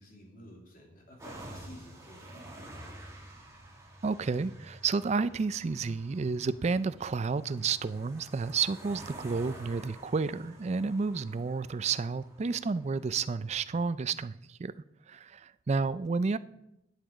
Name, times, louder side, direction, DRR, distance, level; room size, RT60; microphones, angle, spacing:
voice 1, 0.0-2.8 15.7-15.8, equal, 45° left, 2.6 m, -52 dB
sound 1, 1.2-13.9, right 1 dB, 15° right, 2.0 m, -50 dB
voice 2, 4.0-14.7 15.1-16.4, right 4 dB, 35° right, 0.4 m, -31 dB
10.5 x 8.6 x 5.0 m
head